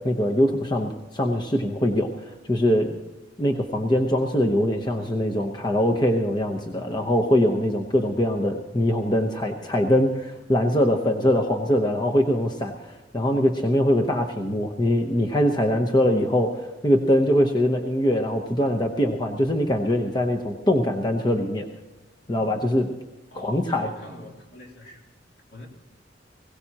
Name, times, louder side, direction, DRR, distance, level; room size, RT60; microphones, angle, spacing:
voice 1, 0.0-3.0 3.4-21.7 22.3-22.9 23.3-23.9, left 1 dB, 25° left, 2 dB, 0.9 m, -22 dB
voice 2, 23.3-25.0 25.5-25.7, left 1 dB, 60° left, -1 dB, 3.1 m, -42 dB
21.5 x 17.0 x 2.9 m, 1.1 s
head